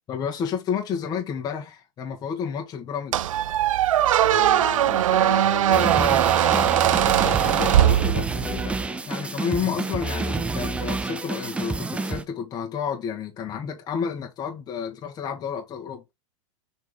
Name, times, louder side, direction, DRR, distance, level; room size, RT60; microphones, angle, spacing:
voice 1, 0.1-3.3 9.1-16.1, left 7 dB, 25° left, 1.7 m, -30 dB
Squeak, 3.1-8.6, right 12 dB, 85° right, 0.5 m, -20 dB
voice 2, 4.2-8.8, left 10 dB, 50° left, 1.9 m, -34 dB
sound 1, 5.7-12.2, right 3 dB, 5° right, 0.6 m, -28 dB
6.4 x 4.7 x 3.7 m
supercardioid pair, 145°, 17 cm